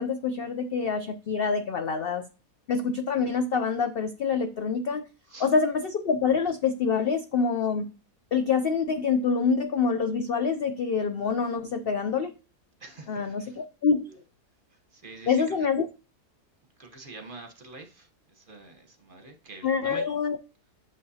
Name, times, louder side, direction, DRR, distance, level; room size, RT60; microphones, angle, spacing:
voice 1, 0.0-2.2 2.7-5.0 5.4-7.9 8.3-12.3 13.1-14.2 15.3-15.9 19.6-20.4, left 5 dB, 75° left, 8 dB, 0.5 m, -26 dB
voice 2, 12.8-13.6 14.9-15.6 16.8-20.1, right 3 dB, 35° right, 4 dB, 1.1 m, -45 dB
8.3 x 6.6 x 2.8 m, 0.34 s
omnidirectional pair, 1.7 m